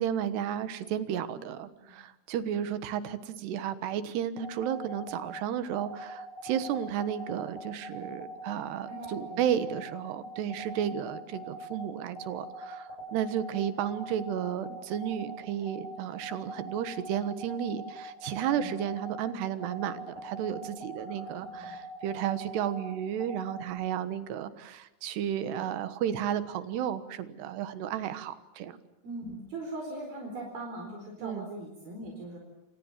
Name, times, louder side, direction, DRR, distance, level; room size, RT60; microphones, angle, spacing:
voice 1, 0.0-28.7 31.2-31.4, right 9 dB, 85° right, 12 dB, 3.5 m, -33 dB
sound 1, 4.4-23.7, right 1 dB, 45° right, 8.7 m, -43 dB
voice 2, 8.9-9.5 18.5-18.7 21.1-21.8 29.0-32.4, right 1 dB, 65° right, 1 dB, 6.2 m, -41 dB
29.0 x 26.5 x 7.4 m, 0.92 s
omnidirectional pair, 4.6 m